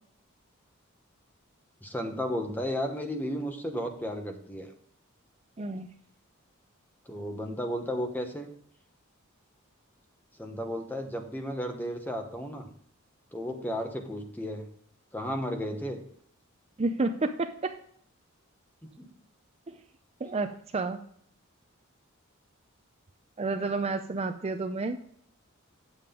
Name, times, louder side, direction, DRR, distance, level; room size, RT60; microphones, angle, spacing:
voice 1, 1.8-4.7 7.1-8.5 10.4-12.7 13.3-14.7 15.1-16.0 18.8-19.1, equal, 10° left, 5 dB, 1.1 m, -34 dB
voice 2, 5.6-5.9 16.8-17.8 19.7-19.8 20.2-21.0 23.4-25.0, right 3 dB, 30° right, 7 dB, 0.5 m, -30 dB
8.7 x 7.5 x 3.7 m, 0.63 s
head